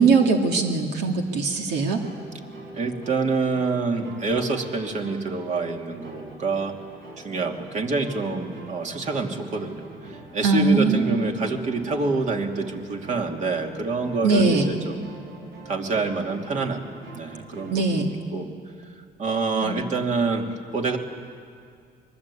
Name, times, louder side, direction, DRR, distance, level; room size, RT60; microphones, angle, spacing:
voice 1, 0.0-2.0 10.4-11.2 14.2-14.7 17.7-18.1 19.6-19.8, right 4 dB, 80° right, 2 dB, 2.4 m, -21 dB
sound 1, 2.0-18.0, right 2 dB, 65° right, 7.3 m, -44 dB
voice 2, 2.7-6.8 7.2-9.9 10.3-15.1 15.7-16.8 17.1-18.5 19.2-21.0, right 3 dB, 45° right, 3 dB, 2.8 m, -27 dB
25.0 x 22.5 x 8.5 m, 2.3 s
cardioid pair, 110°, 17 cm